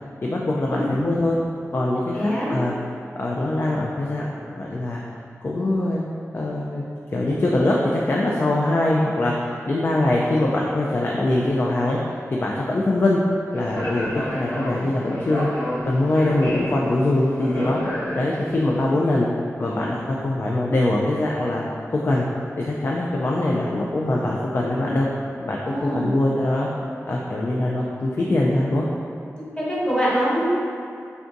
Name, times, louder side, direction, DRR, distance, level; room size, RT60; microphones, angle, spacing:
voice 1, 0.2-1.4 1.7-2.7 3.2-4.3 4.6-5.0 5.4-6.0 6.3-6.8 7.1-12.0 12.3-13.2 13.5-17.8 18.2-19.3 19.6-21.6 21.9-22.3 22.6-25.1 25.4-26.7 27.1-28.9, left 1 dB, 45° left, -3 dB, 0.3 m, -22 dB
voice 2, 2.1-2.5 25.6-26.1 29.4-30.4, equal, 15° left, -8 dB, 1.0 m, -24 dB
Speech, 13.5-18.6, equal, 90° left, 1.1 m, -30 dB
3.4 x 2.5 x 3.9 m, 2.5 s
wide cardioid pair, 90°, 5 cm